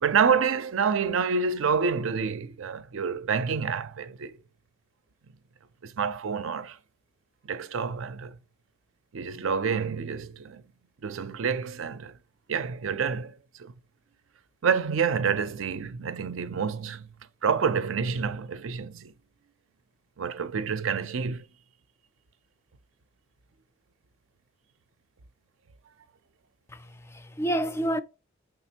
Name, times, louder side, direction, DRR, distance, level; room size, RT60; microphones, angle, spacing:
voice 1, 0.0-4.4 5.8-6.8 7.4-8.4 9.1-10.6 11.0-12.2 12.5-13.7 14.6-17.1 17.4-19.1 20.2-21.5, right 6 dB, 75° right, 0.5 m, -28 dB
voice 2, 26.7-28.0, right 1 dB, 15° left, 0.3 m, -29 dB
5.0 x 3.8 x 2.8 m
head